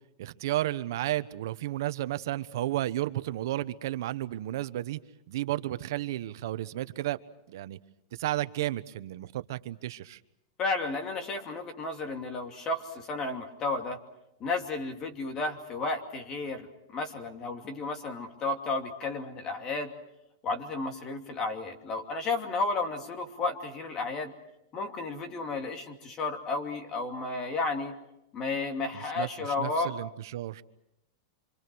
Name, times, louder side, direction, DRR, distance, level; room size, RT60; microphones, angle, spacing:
voice 1, 0.2-5.0 5.3-7.2 7.5-7.8 8.1-10.2 29.0-30.6, right 14 dB, 65° right, 1.1 m, -33 dB
voice 2, 10.6-14.0 14.4-19.9 20.4-24.3 24.7-27.9 28.3-29.9, left 3 dB, 25° left, 2.7 m, -32 dB
26.5 x 26.0 x 6.3 m
supercardioid pair, 160°, 2 cm